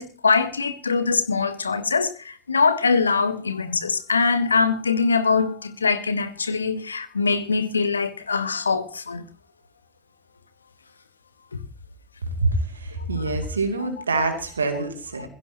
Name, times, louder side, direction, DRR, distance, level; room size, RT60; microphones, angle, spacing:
voice 1, 0.0-9.2 11.5-11.6 13.2-13.3 13.8-14.0 15.2-15.3, left 4 dB, 85° left, 1.1 m, -23 dB
voice 2, 12.8-15.3, right 3 dB, 80° right, 2.6 m, -25 dB
21.0 x 16.0 x 2.8 m
figure-of-eight pair, 65°, 0 cm